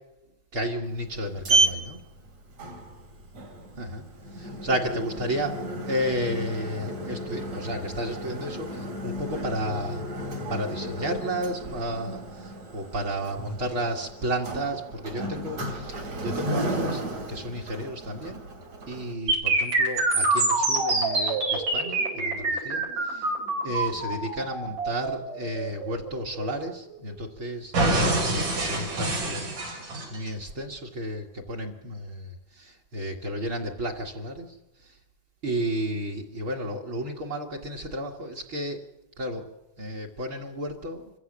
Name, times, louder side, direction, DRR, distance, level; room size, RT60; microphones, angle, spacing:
voice 1, 0.5-2.0 3.8-4.0 4.3-5.6 5.9-10.1 10.5-18.4 18.9-23.3 23.6-28.0 28.3-34.6 34.8-35.0 35.4-38.9 39.2-39.5 39.8-41.1, right 1 dB, 45° right, 6 dB, 2.3 m, -32 dB
Sliding door, 0.9-19.1, right 1 dB, 60° right, 3.8 m, -32 dB
sound 1, 19.3-27.2 27.7-30.3, right 2 dB, 90° right, 6.8 m, -26 dB
26.5 x 15.0 x 7.4 m, 0.93 s
omnidirectional pair, 3.6 m